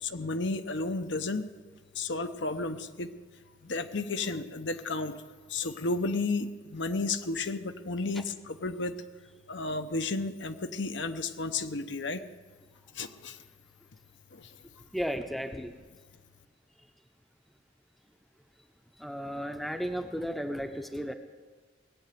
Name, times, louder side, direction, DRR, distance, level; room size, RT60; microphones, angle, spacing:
voice 1, 0.0-1.4 1.9-3.1 3.6-5.2 5.5-9.0 9.5-12.2 12.9-13.4 14.3-14.5, left 3 dB, 70° left, 8 dB, 0.9 m, -32 dB
voice 2, 14.9-15.7 19.0-21.1, equal, ahead, 6 dB, 0.8 m, -34 dB
19.0 x 7.9 x 9.3 m, 1.4 s
head